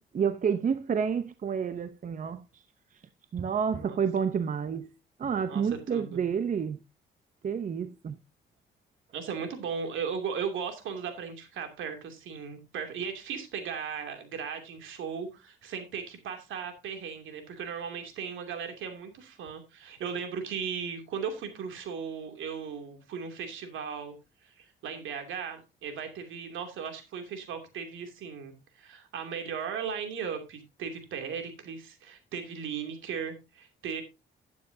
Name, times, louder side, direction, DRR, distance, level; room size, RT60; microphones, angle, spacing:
voice 1, 0.0-2.4 3.3-4.9 5.2-6.8 7.4-8.2, right 7 dB, 40° right, 0.8 m, -29 dB
voice 2, 5.9-6.2 9.1-24.1 24.4-34.0, right 6 dB, 80° right, 2.7 m, -37 dB
11.5 x 9.3 x 2.7 m
cardioid pair, 90°, 20 cm